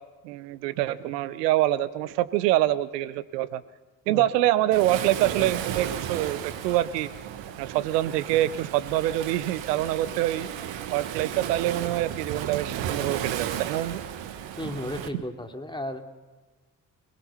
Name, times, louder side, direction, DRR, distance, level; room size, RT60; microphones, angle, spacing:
voice 1, 0.2-3.6 4.1-7.1 7.6-10.5 10.9-14.0, right 14 dB, 85° right, 15 dB, 0.9 m, -25 dB
Waves surf, 4.7-15.1, right 10 dB, 70° right, 1.6 m, -34 dB
voice 2, 14.6-16.1, left 1 dB, 10° left, 4 dB, 2.9 m, -34 dB
28.0 x 19.5 x 5.7 m, 1.2 s
hypercardioid pair, 40°, 47 cm